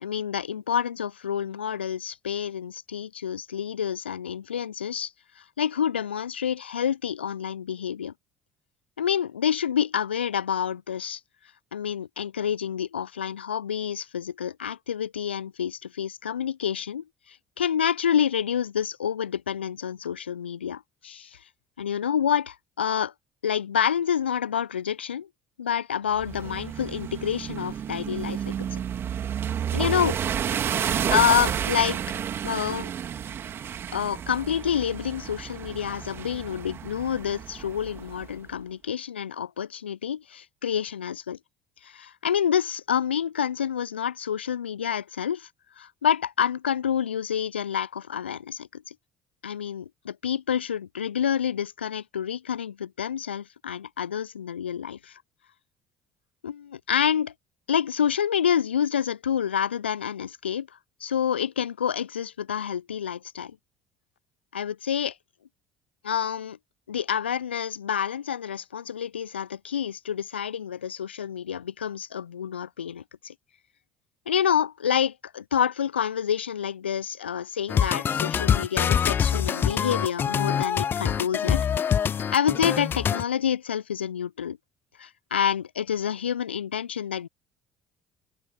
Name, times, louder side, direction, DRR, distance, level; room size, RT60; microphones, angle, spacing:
voice 1, 0.0-8.1 9.0-11.2 11.7-21.4 21.8-23.1 23.4-25.3 25.6-28.8 29.7-30.4 31.1-32.0 32.4-32.9 33.9-41.4 41.8-45.5 45.8-48.9 49.4-55.2 56.4-57.3 57.7-60.7 61.0-63.6 64.5-65.1 66.0-66.6 66.9-73.3 74.3-81.7 82.3-84.6 85.0-87.3, left 8 dB, 85° left, 0.6 m, -28 dB
sound 1, 26.2-38.3, right 9 dB, 45° right, 3.6 m, -31 dB
sound 2, 77.7-83.2, left 8 dB, 35° left, 0.7 m, -24 dB
open air
figure-of-eight pair, 55°, 6 cm